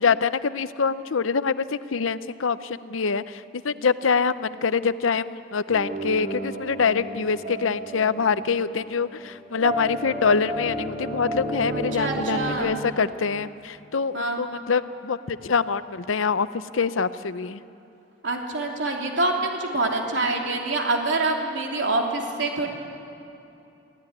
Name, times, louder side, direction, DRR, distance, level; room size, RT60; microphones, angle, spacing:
voice 1, 0.0-17.6, left 5 dB, 90° left, 14 dB, 0.7 m, -25 dB
sound 1, 5.7-12.5, right 1 dB, 30° right, 4.6 m, -32 dB
voice 2, 11.7-12.7 14.1-14.4 18.2-22.7, right 2 dB, 65° right, 1 dB, 3.1 m, -26 dB
24.0 x 16.0 x 9.7 m, 2.8 s
head